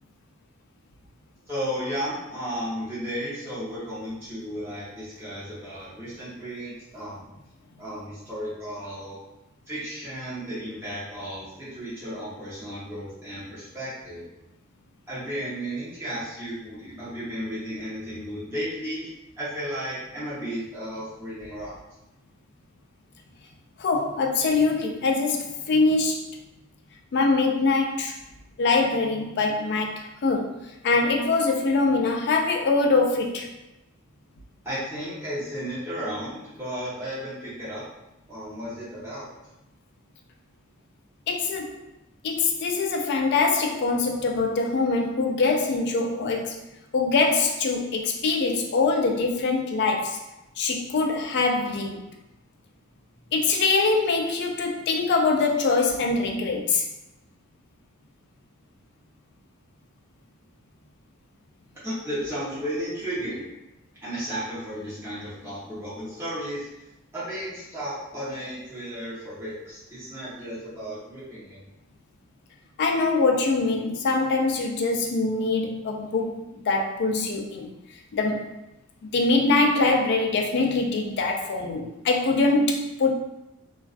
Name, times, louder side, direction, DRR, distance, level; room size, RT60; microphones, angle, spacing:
voice 1, 1.5-7.3 7.8-9.2 9.7-14.3 15.1-19.1 19.4-21.7 34.6-37.8 38.3-39.3 61.8-63.5 64.0-66.7 67.1-71.6, equal, 10° right, -11 dB, 0.8 m, -34 dB
voice 2, 23.8-26.2 27.1-28.1 28.6-30.6 30.8-33.5 41.3-41.8 42.2-46.6 46.9-50.2 50.6-52.0 53.3-56.8 72.8-77.7 78.1-78.6 79.1-83.1, left 3 dB, 50° left, 2 dB, 0.3 m, -23 dB
2.3 x 2.3 x 2.4 m, 0.91 s
head